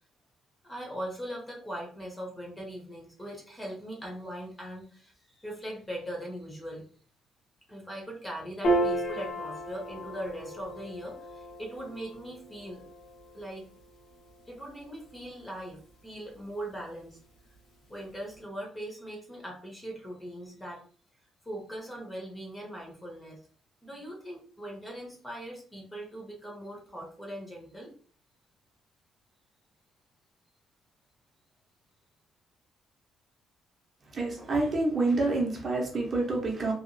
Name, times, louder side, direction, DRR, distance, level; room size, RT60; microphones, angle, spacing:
voice 1, 0.6-6.9 7.7-12.8 13.3-13.7 14.5-17.2 17.9-20.8 21.4-23.4 23.8-27.9, equal, 10° left, -1 dB, 0.6 m, -40 dB
Piano, 8.6-15.3, right 1 dB, 90° left, 1.1 m, -34 dB
voice 2, 34.1-36.7, right 2 dB, 30° right, -1 dB, 0.6 m, -27 dB
2.8 x 2.3 x 2.5 m, 0.43 s
cardioid pair, 175°, 0 cm